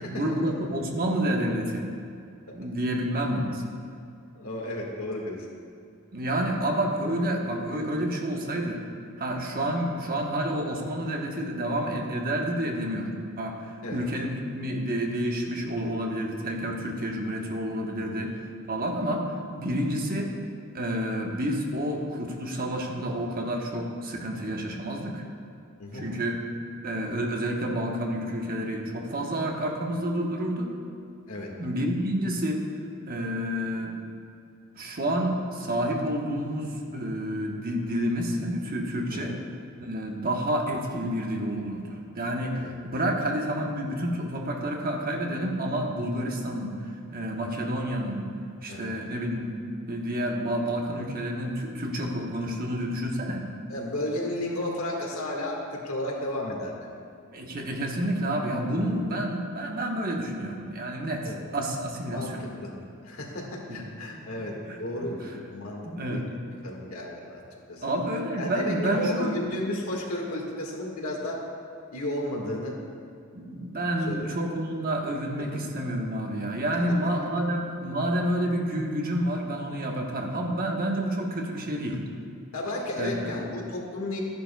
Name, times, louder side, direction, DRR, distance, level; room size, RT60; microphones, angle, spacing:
voice 1, 0.0-1.9 2.5-3.6 6.1-8.8 9.2-20.3 20.7-25.2 25.9-26.4 26.8-30.7 31.6-32.7 33.1-34.0 34.8-39.4 39.8-48.3 48.6-49.5 49.9-53.5 57.3-62.4 63.7-63.8 64.6-64.8 65.8-66.3 67.8-69.3 73.3-82.0 83.0-83.3, right 1 dB, 45° right, 1 dB, 1.1 m, -29 dB
voice 2, 4.4-5.5 13.8-14.0 18.0-18.3 25.8-26.1 31.3-31.5 39.1-39.4 42.5-42.7 48.7-48.9 53.7-56.7 58.8-58.9 61.2-61.4 62.1-62.7 63.0-66.2 66.6-67.4 67.7-67.8 68.4-71.5 71.9-72.8 74.1-74.3 75.4-75.6 82.5-84.2, left 1 dB, 75° left, -1 dB, 1.7 m, -33 dB
14.0 x 10.5 x 2.3 m, 2.5 s
head